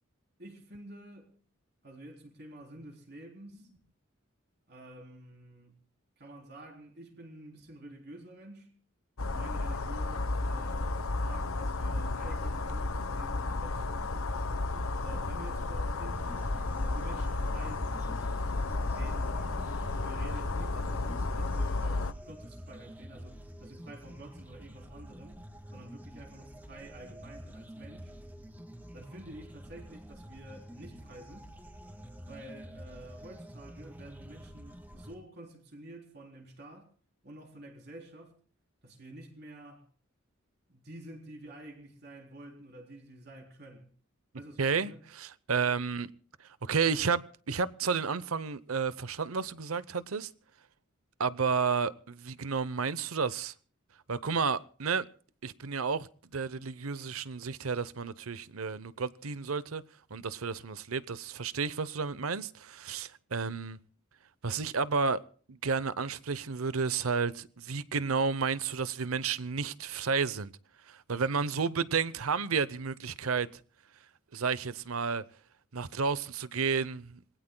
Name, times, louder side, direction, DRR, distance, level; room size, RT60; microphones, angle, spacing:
voice 1, 0.4-1.4 1.8-3.8 4.7-5.8 6.2-8.7 9.2-14.2 14.7-18.3 18.9-19.4 19.9-25.4 25.7-28.1 28.9-31.5 32.2-36.9 37.2-38.4 38.8-39.9 40.7-43.9 44.3-45.0, right 1 dB, 50° right, 3.8 m, -49 dB
sound 1, 9.2-22.1, left 2 dB, 85° left, 1.0 m, -32 dB
sound 2, 16.0-35.1, equal, 10° right, 1.9 m, -48 dB
voice 2, 44.6-46.1 46.4-47.2 47.5-50.3 51.2-53.5 54.1-55.1 55.4-56.1 56.3-59.8 60.1-63.8 64.4-65.2 65.5-70.5 70.9-73.5 74.3-75.2 75.7-77.2, right 5 dB, 90° right, 0.8 m, -31 dB
27.0 x 20.5 x 2.3 m
head